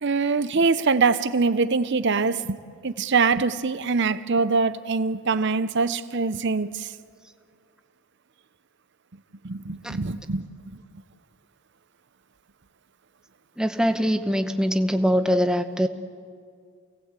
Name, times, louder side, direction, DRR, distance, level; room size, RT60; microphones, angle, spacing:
voice 1, 0.0-2.6 2.8-6.9 9.4-10.5, right 4 dB, 50° right, 0.7 m, -23 dB
voice 2, 13.6-15.9, equal, 5° right, 0.8 m, -22 dB
28.5 x 18.0 x 8.1 m
head